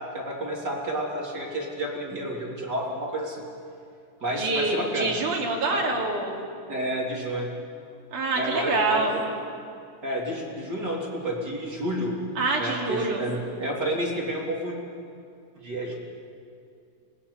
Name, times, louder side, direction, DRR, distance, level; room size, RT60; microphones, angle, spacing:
voice 1, 0.0-3.5 4.2-5.1 5.7-5.8 6.7-7.5 8.3-9.3 10.0-12.1 12.6-14.7 15.6-16.0, equal, 25° right, -2 dB, 3.2 m, -30 dB
voice 2, 4.4-6.4 8.1-9.1 12.4-13.2, right 3 dB, 50° right, -1 dB, 4.2 m, -26 dB
24.0 x 18.0 x 9.9 m, 2.5 s
omnidirectional pair, 4.8 m